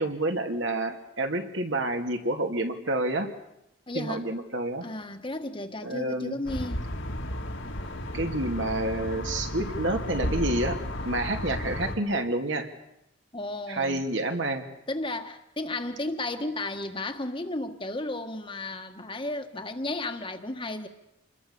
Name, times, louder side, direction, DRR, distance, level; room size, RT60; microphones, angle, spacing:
voice 1, 0.0-3.3 3.9-4.9 5.8-6.4 8.1-10.8 11.0-12.7 13.7-14.7, right 2 dB, 65° right, 2.5 m, -29 dB
voice 2, 3.9-4.2 4.8-6.9 7.6-8.2 13.3-14.0 14.9-20.9, left 2 dB, 25° left, 1.6 m, -34 dB
sound 1, 6.5-12.0, left 1 dB, 65° left, 2.4 m, -33 dB
27.5 x 21.5 x 7.0 m
head